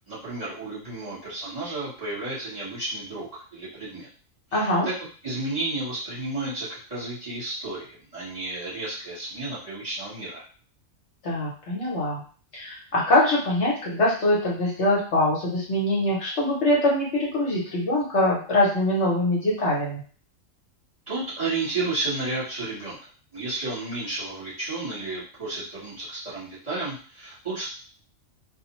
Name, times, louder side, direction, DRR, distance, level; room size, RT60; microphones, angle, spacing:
voice 1, 0.1-4.1 4.5-4.9 5.2-10.4 21.1-23.0 23.3-27.7, right 2 dB, 30° right, -10 dB, 1.2 m, -32 dB
voice 2, 4.5-4.9 11.2-12.2 12.5-20.0, left 1 dB, 60° left, -4 dB, 1.1 m, -23 dB
2.5 x 2.1 x 2.9 m, 0.41 s
omnidirectional pair, 1.4 m